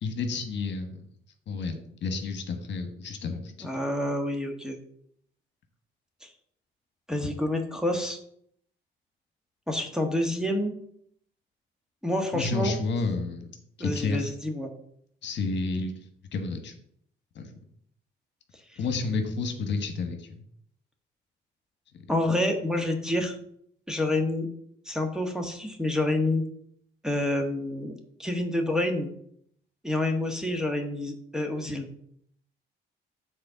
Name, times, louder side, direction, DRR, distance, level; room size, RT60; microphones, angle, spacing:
voice 1, 0.0-1.0 1.5-3.7 12.3-13.5 13.8-14.3 15.2-16.7 17.3-17.5 18.8-20.3, left 3 dB, 65° left, 6 dB, 1.3 m, -30 dB
voice 2, 3.6-4.8 6.2-6.3 7.1-8.2 9.7-10.7 12.0-12.7 13.8-14.7 22.1-23.4 23.9-24.5 24.8-26.4 27.0-27.9 28.2-29.1 29.8-31.9, left 1 dB, 5° right, 3 dB, 1.4 m, -28 dB
6.9 x 4.3 x 6.8 m, 0.68 s
cardioid pair, 90°, 20 cm